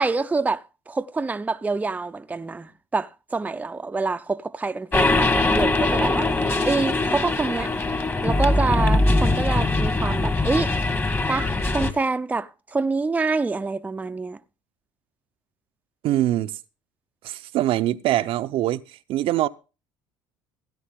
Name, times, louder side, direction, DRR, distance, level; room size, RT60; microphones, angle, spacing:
voice 1, 0.0-6.3 6.7-7.7 8.2-10.7 11.3-14.4, right 3 dB, 15° right, 0.6 m, -26 dB
sound 1, 4.9-11.9, left 2 dB, 20° left, 1.7 m, -22 dB
voice 2, 16.0-16.6 17.2-19.5, right 14 dB, 60° right, 0.7 m, -23 dB
16.5 x 9.7 x 3.7 m
hypercardioid pair, 75°, 10 cm